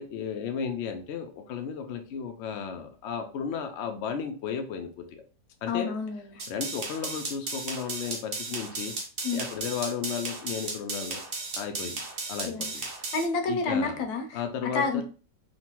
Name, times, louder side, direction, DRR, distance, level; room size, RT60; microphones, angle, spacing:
voice 1, 0.0-5.2 5.6-5.9 6.5-8.9 9.3-11.2 11.5-12.0 12.3-12.8 13.5-14.0 14.3-15.0, left 7 dB, 90° left, 4 dB, 0.6 m, -34 dB
voice 2, 5.7-6.4 9.2-9.4 12.4-12.7 13.1-14.4 14.7-15.0, left 4 dB, 75° left, 4 dB, 1.1 m, -29 dB
sound 1, 6.4-13.2, right 3 dB, 85° right, 0.5 m, -35 dB
3.1 x 2.1 x 2.9 m, 0.37 s
omnidirectional pair, 1.8 m